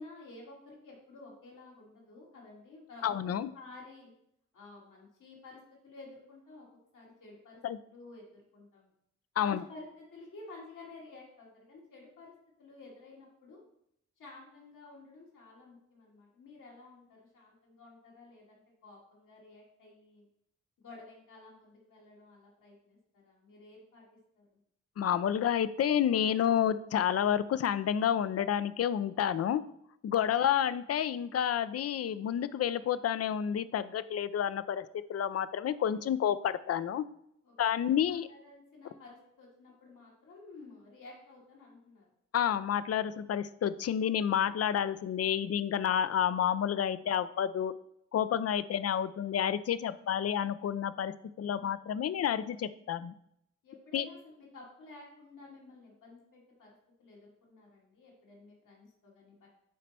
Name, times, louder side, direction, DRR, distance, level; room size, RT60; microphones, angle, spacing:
voice 1, 0.0-3.2 3.5-4.1 4.5-5.6 5.8-6.6 6.9-8.9 9.4-12.3 12.6-13.6 14.2-20.3 20.8-24.0 24.4-24.6 37.4-42.1 43.4-43.5 47.0-47.2 49.9-50.1 51.5-51.8 53.6-56.7 57.0-59.5, left 2 dB, 75° left, -3 dB, 2.5 m, -52 dB
voice 2, 3.0-3.5 7.6-7.8 9.4-9.6 25.0-29.6 30.0-37.1 37.6-38.3 42.3-47.7 48.1-53.1 53.9-54.0, left 9 dB, 50° left, 15 dB, 0.5 m, -30 dB
8.5 x 4.2 x 4.2 m, 0.74 s
supercardioid pair, 45°, 31 cm